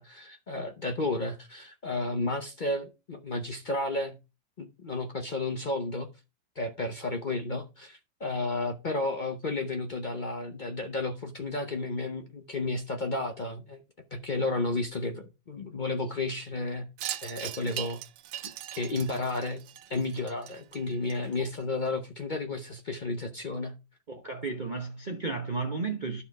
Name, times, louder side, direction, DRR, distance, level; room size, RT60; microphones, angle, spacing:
voice 1, 0.0-4.2 4.6-6.1 6.6-13.8 14.1-16.9 17.2-18.0 18.7-19.6 19.9-23.8, left 2 dB, 50° left, 0.5 m, -32 dB
Wind chime, 17.0-21.6, right 13 dB, 75° right, 1.2 m, -40 dB
voice 2, 24.1-26.2, right 4 dB, 45° right, 0.6 m, -33 dB
12.0 x 4.2 x 4.6 m
omnidirectional pair, 2.1 m